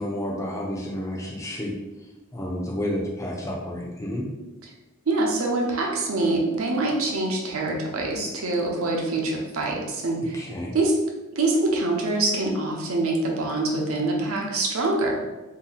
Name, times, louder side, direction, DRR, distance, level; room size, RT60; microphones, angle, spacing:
voice 1, 0.0-1.7 2.3-4.2 10.3-10.7, left 1 dB, 15° left, -3 dB, 0.5 m, -30 dB
voice 2, 5.1-10.4 10.7-10.9 11.3-15.2, right 2 dB, 70° right, -1 dB, 0.7 m, -25 dB
2.7 x 2.2 x 3.9 m, 1.1 s
head